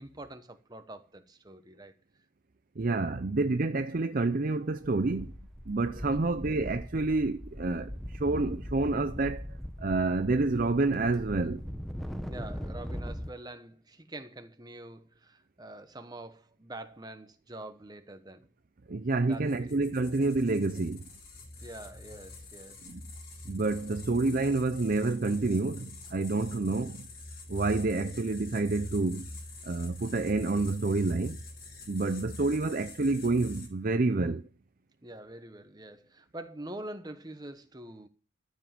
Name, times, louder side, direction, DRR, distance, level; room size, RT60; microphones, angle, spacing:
voice 1, 0.0-2.0 5.9-6.2 12.2-18.5 19.2-19.8 21.6-22.9 35.0-38.1, right 1 dB, 20° right, 1.1 m, -45 dB
voice 2, 2.8-5.3 5.7-9.4 9.8-11.6 18.9-21.0 22.9-23.0 23.5-27.1 27.5-29.3 29.6-31.4 31.9-34.4, right 3 dB, 45° right, 0.5 m, -28 dB
sound 1, 4.4-4.5 4.8-13.3, equal, ahead, 0.9 m, -40 dB
sound 2, 19.3-33.7, left 2 dB, 50° left, 4.9 m, -46 dB
13.5 x 7.3 x 7.6 m
head